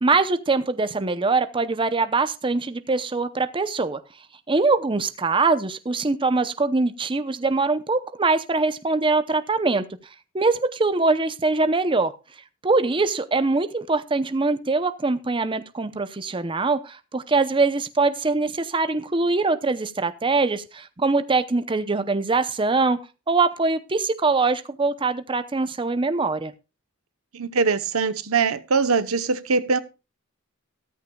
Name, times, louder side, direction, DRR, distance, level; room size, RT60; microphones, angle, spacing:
voice 1, 0.0-4.0 4.5-9.8 10.3-12.1 12.6-23.0 23.3-26.5, right 3 dB, 25° right, 0.7 m, -23 dB
voice 2, 27.3-29.8, right 4 dB, 90° right, 1.0 m, -22 dB
14.0 x 13.5 x 2.3 m
head